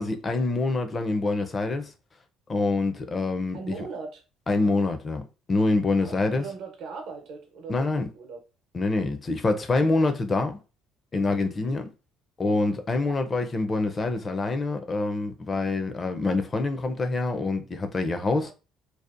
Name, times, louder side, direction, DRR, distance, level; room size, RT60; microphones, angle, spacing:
voice 1, 0.0-1.9 2.5-3.7 4.5-5.2 5.5-6.4 7.7-8.1 8.7-10.6 11.1-11.9 12.4-18.5, left 3 dB, 25° left, 0.4 m, -26 dB
voice 2, 3.5-4.2 5.9-8.4 11.4-11.8 18.2-18.5, right 4 dB, 65° right, 0.8 m, -40 dB
2.6 x 2.0 x 2.4 m
cardioid pair, 130°, 0 cm